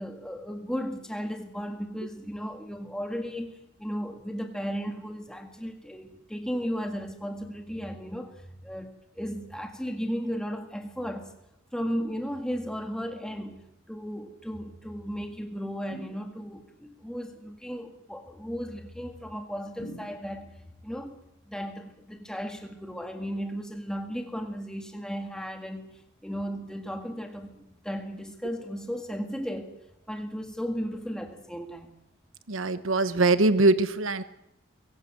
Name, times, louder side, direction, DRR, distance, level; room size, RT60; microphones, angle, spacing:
voice 1, 0.0-11.3 11.7-20.5 20.8-21.2 21.5-29.8 30.1-31.9, equal, 5° left, 1.9 m, -35 dB
sound 1, 15.9-16.8 19.8-20.7, right 1 dB, 30° left, 5.1 m, -45 dB
voice 2, 32.5-34.2, right 2 dB, 85° right, 1.1 m, -22 dB
23.5 x 17.0 x 7.9 m
head